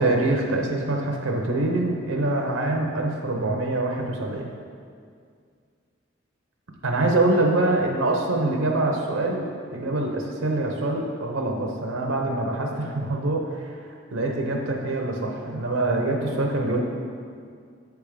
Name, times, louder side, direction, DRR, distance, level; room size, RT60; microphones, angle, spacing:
voice 1, 0.0-4.5 6.8-9.5 9.7-13.7 14.1-16.8, right 2 dB, 90° right, 1 dB, 0.7 m, -24 dB
7.9 x 3.5 x 4.9 m, 2.2 s
head